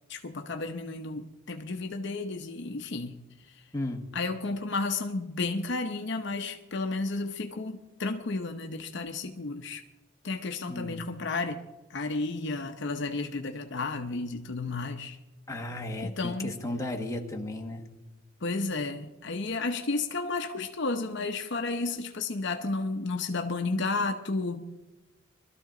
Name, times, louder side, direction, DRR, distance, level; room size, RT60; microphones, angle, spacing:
voice 1, 0.1-3.2 4.1-9.8 10.2-11.6 11.9-15.2 16.0-16.5 18.4-24.6, left 3 dB, 60° left, 6 dB, 0.8 m, -32 dB
voice 2, 3.7-4.1 10.7-11.0 15.5-17.8, left 1 dB, 15° left, 1 dB, 1.5 m, -34 dB
22.0 x 13.0 x 3.8 m, 1.0 s
head